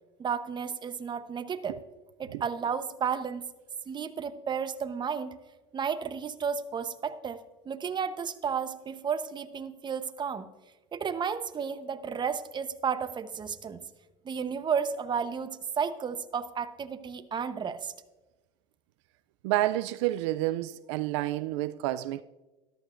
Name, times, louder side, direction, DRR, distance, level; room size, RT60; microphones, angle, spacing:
voice 1, 0.2-1.8 2.2-3.5 3.9-5.4 5.7-10.5 10.9-13.8 14.2-17.9, right 6 dB, 30° right, 11 dB, 0.9 m, -32 dB
voice 2, 19.4-22.2, right 16 dB, 85° right, 15 dB, 0.4 m, -29 dB
13.5 x 12.5 x 2.5 m, 1.1 s
supercardioid pair, 90°, 15 cm